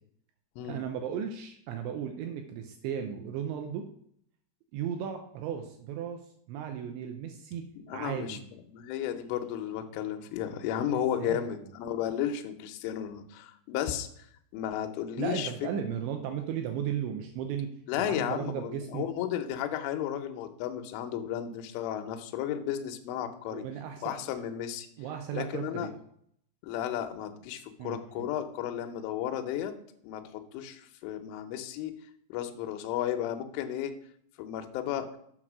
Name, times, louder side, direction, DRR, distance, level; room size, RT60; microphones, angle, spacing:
voice 1, 0.7-3.9 4.7-6.2 6.5-7.6 7.9-8.4 10.9-11.5 15.2-17.7 18.0-19.1 23.5-24.2 25.0-25.9 27.8-28.3, right 8 dB, 90° right, 5 dB, 2.6 m, -35 dB
voice 2, 7.9-8.4 8.7-14.1 14.5-15.5 17.9-23.6 24.0-24.9 25.3-25.9 26.6-29.7 30.0-31.9 32.3-33.9 34.4-35.1, left 10 dB, 80° left, 5 dB, 3.2 m, -33 dB
8.0 x 5.9 x 6.0 m, 0.67 s
omnidirectional pair, 6.0 m